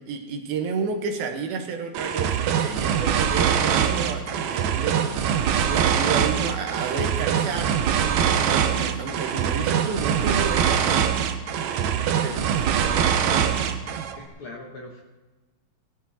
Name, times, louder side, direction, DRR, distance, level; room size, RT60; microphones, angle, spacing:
voice 1, 0.0-5.0 5.6-11.0 12.2-13.8, right 5 dB, 85° right, 4 dB, 3.3 m, -31 dB
sound 1, 1.9-14.2, right 8 dB, 70° right, 1.8 m, -23 dB
voice 2, 14.2-15.0, left 2 dB, 55° left, 0 dB, 1.5 m, -40 dB
18.0 x 12.5 x 4.2 m, 1.2 s
omnidirectional pair, 4.1 m